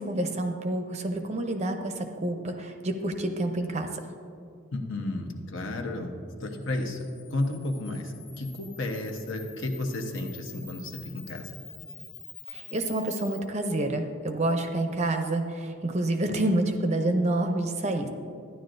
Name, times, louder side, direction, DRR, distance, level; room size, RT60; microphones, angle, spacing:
voice 1, 0.0-3.9 12.5-18.1, right 1 dB, 30° right, 5 dB, 0.6 m, -28 dB
voice 2, 4.7-6.1 6.4-11.5, left 2 dB, 55° left, 3 dB, 0.9 m, -32 dB
Camera, 6.4-13.4, left 5 dB, 25° left, 1.0 m, -47 dB
12.5 x 10.0 x 2.6 m, 2.4 s
head